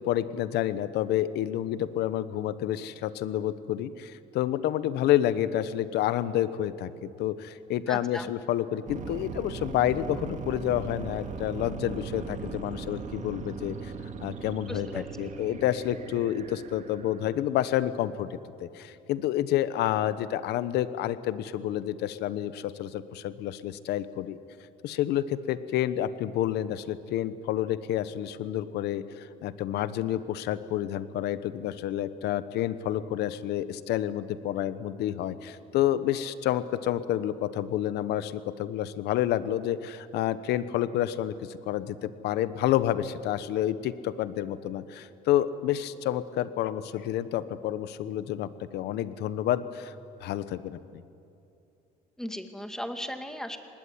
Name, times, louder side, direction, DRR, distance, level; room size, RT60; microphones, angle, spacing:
voice 1, 0.0-13.9 14.2-24.4 24.8-49.9 50.2-51.0, left 12 dB, 80° left, 14 dB, 1.1 m, -29 dB
voice 2, 7.9-8.3 14.7-15.1 52.2-53.6, equal, 5° left, 7 dB, 2.1 m, -36 dB
sound 1, 8.9-17.5, right 5 dB, 45° right, 2.0 m, -39 dB
25.0 x 20.0 x 9.7 m, 2.6 s
cardioid pair, 110°, 17 cm